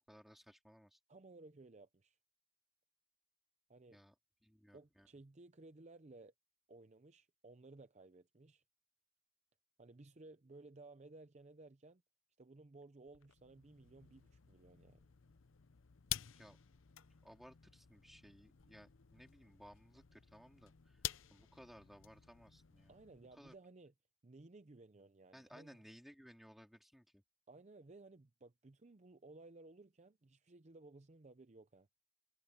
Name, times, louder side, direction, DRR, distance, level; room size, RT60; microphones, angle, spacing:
voice 1, 0.0-1.0 3.9-4.1 4.4-5.1 16.3-16.6 17.2-23.0 23.3-23.5 25.3-27.2, equal, ahead, 4.1 m, -60 dB
voice 2, 1.1-2.2 3.7-4.0 4.7-6.3 6.7-8.6 9.8-12.0 12.4-15.1 22.9-23.9 24.2-25.8 27.5-31.9, right 2 dB, 35° right, 0.6 m, -58 dB
sound 1, 13.1-23.6, left 12 dB, 90° left, 0.7 m, -50 dB
head